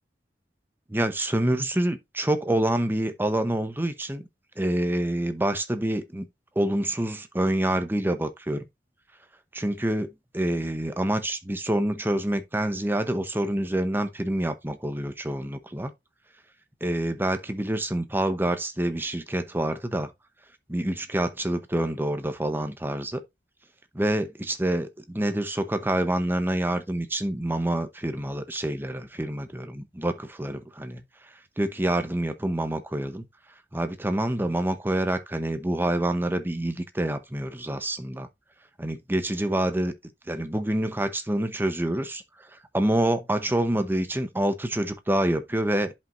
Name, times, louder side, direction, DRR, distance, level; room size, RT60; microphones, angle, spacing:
voice 1, 0.9-4.2 4.6-6.2 6.6-8.6 9.5-10.1 10.3-15.9 16.8-20.1 20.7-23.2 23.9-31.0 31.6-33.2 33.7-38.3 38.8-39.9 40.3-42.2 42.5-45.9, right 1 dB, 10° right, 0.8 m, -27 dB
11.0 x 5.3 x 2.6 m
head